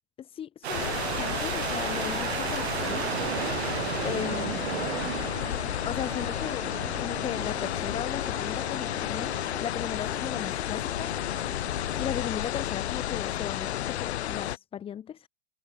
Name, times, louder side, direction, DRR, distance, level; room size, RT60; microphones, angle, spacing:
voice 1, 0.2-3.1 4.0-4.7 5.6-11.1 12.0-15.3, left 9 dB, 15° left, 5.3 m, -37 dB
sound 1, 0.6-12.1, right 13 dB, 65° right, 3.3 m, -35 dB
sound 2, 0.7-14.6, left 12 dB, 65° left, 5.7 m, -32 dB
supercardioid pair, 170°, 35 cm